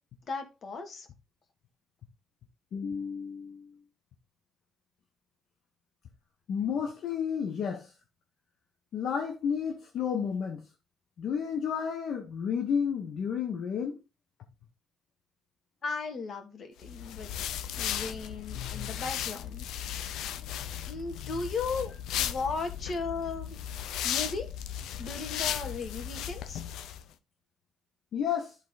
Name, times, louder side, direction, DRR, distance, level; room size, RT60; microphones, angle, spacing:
voice 1, 0.3-1.1 15.8-19.7 20.5-23.6 24.0-24.5 25.0-26.6, left 4 dB, 55° left, 2.1 m, -36 dB
voice 2, 2.7-3.7 6.5-7.9 8.9-10.6 11.2-14.0 28.1-28.5, left 7 dB, 70° left, 1.1 m, -31 dB
sound 1, 16.8-27.0, left 10 dB, 85° left, 0.6 m, -36 dB
11.0 x 4.0 x 4.0 m
cardioid pair, 90°, 0 cm